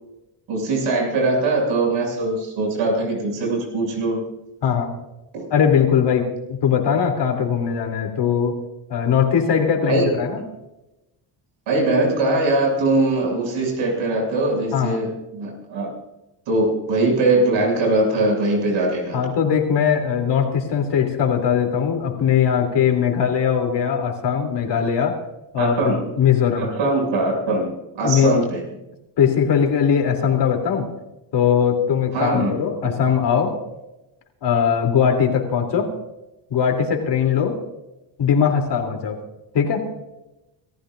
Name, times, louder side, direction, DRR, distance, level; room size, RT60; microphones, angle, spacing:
voice 1, 0.5-4.2 5.3-5.5 9.9-10.2 11.7-15.9 16.5-19.2 25.6-26.1 26.6-28.6 32.1-32.6, right 2 dB, 80° right, 0 dB, 7.0 m, -21 dB
voice 2, 4.6-5.0 5.5-8.6 8.9-10.4 14.7-15.0 19.1-25.2 25.5-26.7 28.0-28.4 29.2-30.9 31.3-33.6 34.4-35.9 36.5-37.6 38.2-39.2 39.5-39.9, left 7 dB, 60° left, 3 dB, 3.3 m, -20 dB
26.0 x 14.5 x 2.6 m, 0.95 s
cardioid pair, 110°, 46 cm